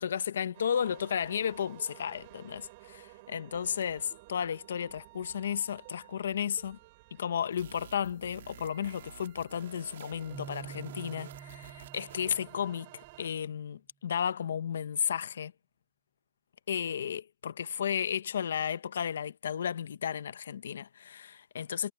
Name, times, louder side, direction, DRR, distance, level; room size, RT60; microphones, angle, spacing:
voice 1, 0.0-6.8 7.1-15.5 16.7-21.9, left 8 dB, 85° left, 0.9 m, -33 dB
sound 1, 0.5-13.3, right 22 dB, 45° right, 7.9 m, -54 dB
sound 2, 7.5-12.6, right 10 dB, 75° right, 3.2 m, -51 dB
Keyboard (musical), 10.3-13.2, right 6 dB, 15° right, 7.1 m, -48 dB
hypercardioid pair, 150°, 0 cm